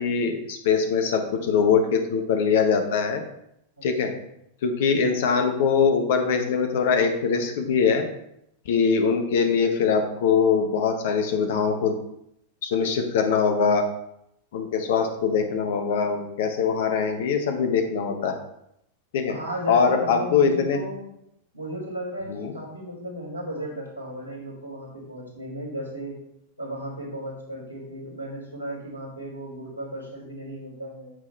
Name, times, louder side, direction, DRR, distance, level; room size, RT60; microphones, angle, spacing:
voice 1, 0.0-3.2 3.8-4.1 4.6-8.0 8.6-11.9 12.6-13.8 14.5-18.4 19.1-19.3 19.7-20.8 22.3-22.5, left 6 dB, 55° left, 6 dB, 1.3 m, -22 dB
voice 2, 3.8-4.2 19.3-21.1 21.5-26.2 26.6-31.1, equal, 85° left, -4 dB, 4.0 m, -35 dB
10.0 x 7.4 x 3.4 m, 0.77 s
figure-of-eight pair, 90°, 0 cm